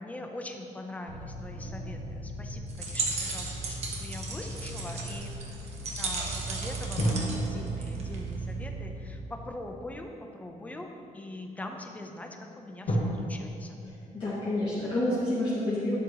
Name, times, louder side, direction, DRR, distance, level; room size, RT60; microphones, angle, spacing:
voice 1, 0.0-13.8, left 1 dB, 10° left, 3 dB, 0.7 m, -42 dB
sound 1, 1.1-9.1, right 2 dB, 85° right, 2.3 m, -38 dB
sound 2, 1.5-4.1 7.0-10.3 11.0-11.1 12.9-13.0, equal, 60° left, 2.2 m, -36 dB
sound 3, 2.7-8.3, right 3 dB, 50° right, 1.2 m, -36 dB
voice 2, 13.9-15.9, left 1 dB, 35° left, -11 dB, 2.1 m, -29 dB
11.5 x 9.0 x 3.0 m, 2.7 s
wide cardioid pair, 180°, 14 cm